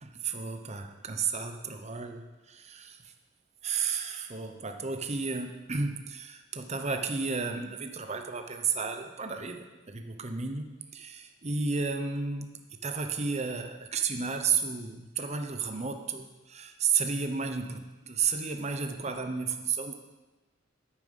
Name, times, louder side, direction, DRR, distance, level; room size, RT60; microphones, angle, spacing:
voice 1, 0.0-3.0 3.6-19.9, right 5 dB, 35° right, 6 dB, 0.9 m, -32 dB
9.7 x 8.9 x 5.5 m, 1.1 s
head